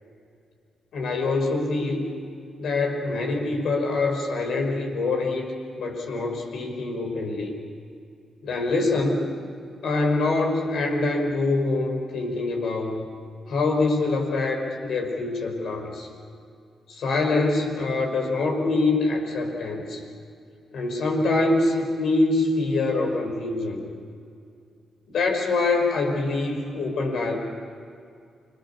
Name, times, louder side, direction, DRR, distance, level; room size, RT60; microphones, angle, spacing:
voice 1, 0.9-2.1 2.6-5.5 5.8-7.5 8.4-9.3 9.8-13.1 13.5-16.1 16.9-20.0 20.7-23.8 25.1-27.4, left 3 dB, 70° left, 2 dB, 5.6 m, -24 dB
29.0 x 23.0 x 7.2 m, 2.4 s
hypercardioid pair, 45°, 0 cm